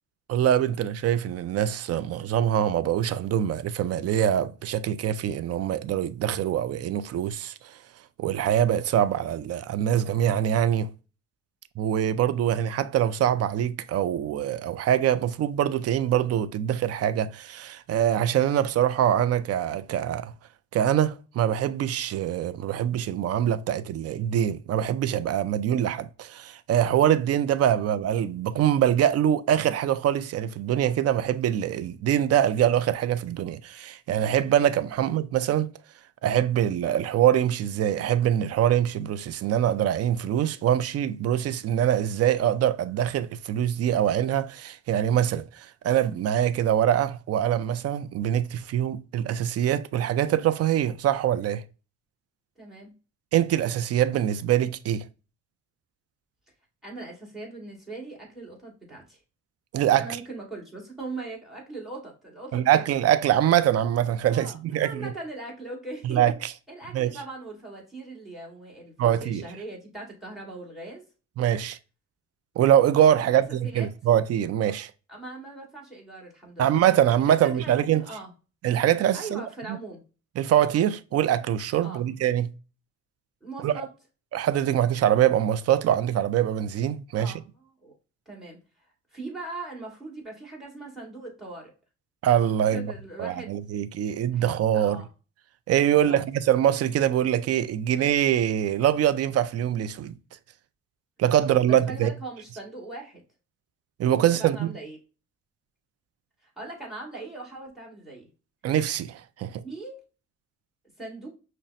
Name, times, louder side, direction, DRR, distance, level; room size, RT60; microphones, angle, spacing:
voice 1, 0.3-7.8 8.2-10.9 11.8-20.3 20.7-35.7 36.2-51.6 53.3-55.1 59.7-60.1 62.5-65.1 66.0-66.5 66.9-67.1 69.0-69.4 71.4-71.8 72.6-74.9 76.6-78.1 78.6-79.8 80.4-82.5 83.6-83.7 84.3-87.3 92.2-92.9 93.2-95.0 95.7-100.1 101.2-102.1 104.0-104.7 108.6-109.6, right 10 dB, 55° right, 0.4 m, -24 dB
voice 2, 52.6-52.9 56.8-59.2 60.0-62.8 64.3-66.2 66.7-71.0 73.1-73.9 75.1-76.7 77.4-78.3 79.1-80.0 81.8-82.1 83.4-83.9 87.2-87.9 88.3-88.6 89.1-91.7 92.7-93.5 94.3-94.5 94.7-95.1 95.9-96.2 101.7-103.2 104.1-105.0 106.4-108.3 109.6-110.0 111.0-111.3, right 2 dB, ahead, 1.8 m, -40 dB
5.6 x 2.2 x 2.5 m
cardioid pair, 90°, 30 cm